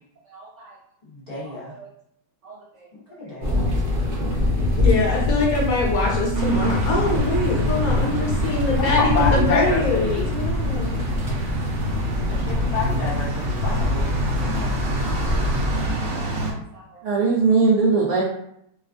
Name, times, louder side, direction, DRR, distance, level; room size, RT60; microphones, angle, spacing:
voice 1, 1.1-1.7 3.1-3.6 8.8-10.3 12.3-14.1 14.4-14.7, left 3 dB, 35° left, -9 dB, 0.6 m, -28 dB
sound 1, 3.4-15.9, left 2 dB, 40° right, 0.8 m, -24 dB
voice 2, 4.8-11.0, left 2 dB, 65° left, -2 dB, 1.0 m, -24 dB
voice 3, 6.2-6.8 14.6-14.7 16.4-16.6 17.0-18.2, right 4 dB, 85° right, -3 dB, 0.6 m, -21 dB
sound 2, 6.3-16.5, right 1 dB, 70° right, 1.0 m, -27 dB
3.1 x 2.3 x 2.4 m, 0.73 s
omnidirectional pair, 1.9 m